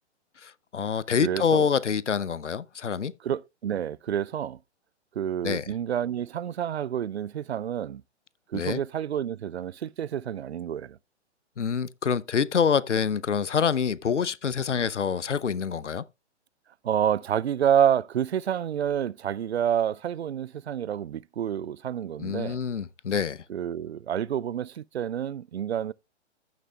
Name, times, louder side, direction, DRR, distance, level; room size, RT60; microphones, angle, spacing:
voice 1, 0.4-3.1 5.4-5.7 8.5-8.8 11.6-16.0 22.2-23.4, left 7 dB, 80° left, 0.7 m, -26 dB
voice 2, 1.2-1.7 3.2-4.6 5.2-8.0 8.5-11.0 16.8-22.6 23.5-25.9, right 9 dB, 65° right, 0.5 m, -28 dB
14.5 x 6.6 x 2.2 m
figure-of-eight pair, 130°, 35 cm